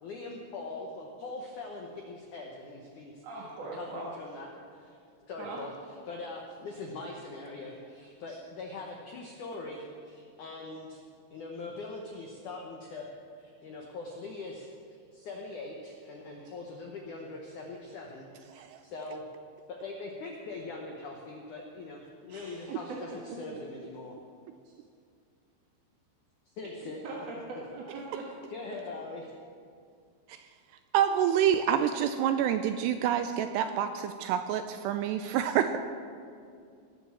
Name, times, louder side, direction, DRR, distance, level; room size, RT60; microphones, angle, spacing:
voice 1, 0.0-5.0 5.3-5.7 6.1-11.0 11.3-13.1 13.4-19.3 19.7-24.2 26.6-27.0 28.5-29.3, left 3 dB, 80° left, 0 dB, 1.8 m, -42 dB
voice 2, 3.2-4.1 5.4-5.6 8.3-8.4 22.3-22.8 27.0-28.2, right 3 dB, 55° right, -4 dB, 1.9 m, -41 dB
voice 3, 30.9-35.8, right 9 dB, 85° right, 8 dB, 2.4 m, -27 dB
19.5 x 7.3 x 7.3 m, 2.3 s
omnidirectional pair, 5.3 m